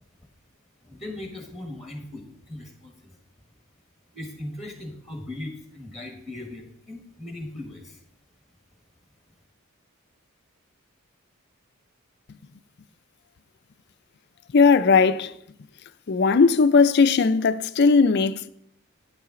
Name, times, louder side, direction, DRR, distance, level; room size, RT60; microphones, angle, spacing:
voice 1, 0.8-3.2 4.1-8.0, left 1 dB, ahead, 1.3 m, -38 dB
voice 2, 14.5-15.3 16.1-18.5, left 4 dB, 50° left, 0.4 m, -18 dB
9.3 x 8.8 x 3.7 m
head